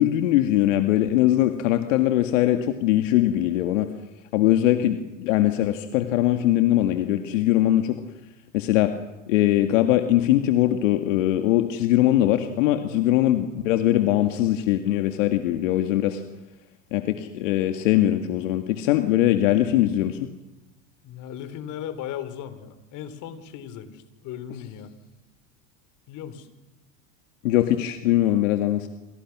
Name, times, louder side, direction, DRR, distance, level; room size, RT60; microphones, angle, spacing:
voice 1, 0.0-3.9 4.3-8.0 8.5-8.9 9.3-16.2 16.9-20.2 27.4-28.9, left 13 dB, 75° left, 7 dB, 2.1 m, -21 dB
voice 2, 21.0-24.9 26.1-26.5, left 9 dB, 50° left, 11 dB, 4.0 m, -37 dB
28.0 x 27.0 x 6.2 m, 1.0 s
supercardioid pair, 110°, 39 cm